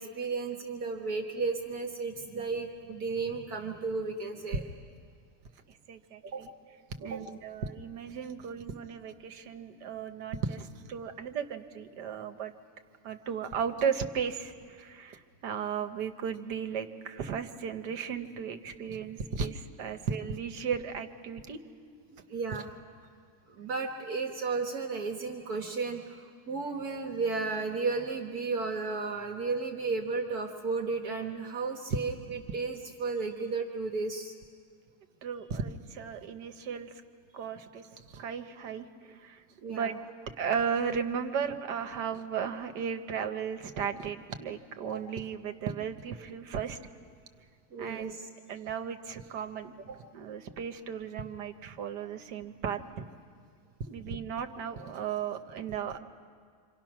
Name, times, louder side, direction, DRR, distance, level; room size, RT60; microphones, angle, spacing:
voice 1, 0.0-4.6 6.2-6.5 7.0-7.3 22.3-22.7 23.5-34.3 38.2-38.3 39.6-40.0 44.9-45.0 47.7-48.2 49.9-50.0, right 4 dB, 65° right, 3 dB, 1.7 m, -34 dB
voice 2, 5.7-6.5 7.0-12.5 13.0-21.6 22.5-22.6 35.2-36.9 37.3-39.4 39.7-39.9 40.4-46.8 47.8-48.1 48.5-49.8 50.1-53.1 53.9-56.0, right 7 dB, 80° right, 7 dB, 1.7 m, -35 dB
27.5 x 26.5 x 6.0 m, 2.1 s
omnidirectional pair, 1.8 m